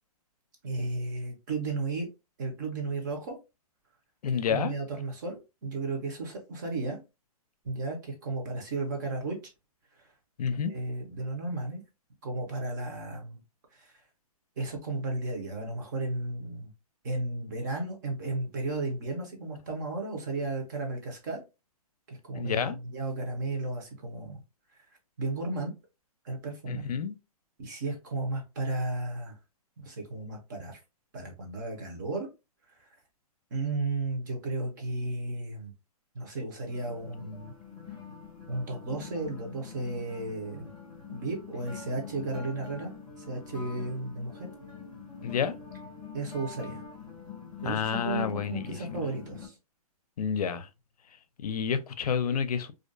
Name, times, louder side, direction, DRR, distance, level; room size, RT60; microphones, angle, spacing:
voice 1, 0.6-2.1 2.4-3.4 4.5-7.0 7.6-9.4 10.5-11.8 12.2-13.4 13.8-13.9 14.6-16.7 17.0-21.4 22.1-24.4 25.2-25.7 26.2-26.9 27.6-29.4 29.8-30.8 31.1-32.3 33.5-35.7 36.1-37.5 38.5-40.7 41.1-42.9 43.2-44.5 46.1-46.8 47.6-49.5, right 2 dB, 30° right, 0.7 m, -34 dB
voice 2, 4.2-4.7 10.4-10.7 22.3-22.8 26.7-27.1 45.2-45.6 47.6-49.0 50.2-50.7 51.4-52.7, left 7 dB, 80° left, 0.5 m, -29 dB
sound 1, 36.7-49.5, left 6 dB, 5° right, 0.3 m, -44 dB
2.4 x 2.2 x 2.4 m
hypercardioid pair, 175°, 19 cm